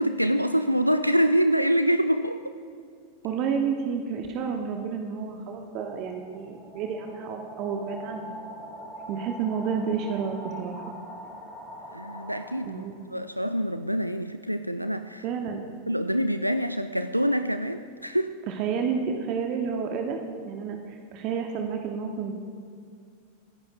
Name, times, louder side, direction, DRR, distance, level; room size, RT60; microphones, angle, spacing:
voice 1, 0.0-2.4 11.9-15.2 15.9-18.4, equal, 90° right, 10 dB, 0.3 m, -25 dB
voice 2, 3.2-8.3 9.1-10.9 12.6-12.9 15.2-15.7 18.5-20.2 20.4-22.3, right 6 dB, 40° right, 3 dB, 0.9 m, -30 dB
sound 1, 5.3-13.1, equal, 10° right, 2.3 m, -43 dB
25.0 x 10.5 x 2.5 m, 2.2 s
figure-of-eight pair, 90°, 0 cm